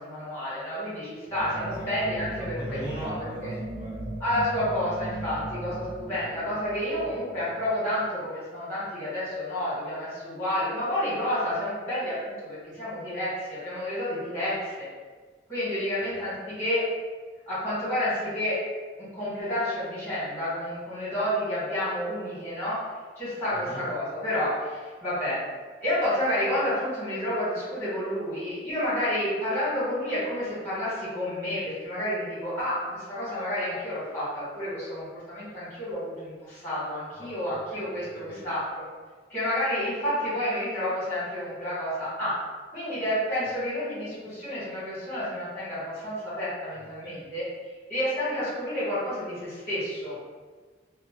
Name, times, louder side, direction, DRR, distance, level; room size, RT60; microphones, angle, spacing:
voice 1, 0.0-3.1 3.4-3.5 4.2-14.9 15.5-16.8 17.5-18.6 19.1-22.8 23.2-25.4 25.8-38.8 39.3-42.4 42.7-47.4 47.9-50.1, left 1 dB, 10° left, -11 dB, 1.4 m, -30 dB
sound 1, 1.3-8.1, right 2 dB, 90° right, 0.5 m, -38 dB
voice 2, 2.4-4.2 16.1-16.2 23.5-23.8 37.1-37.3 37.7-37.9 38.3-38.4 46.7-47.3, equal, 25° right, -12 dB, 1.5 m, -41 dB
2.7 x 2.0 x 3.0 m, 1.4 s
head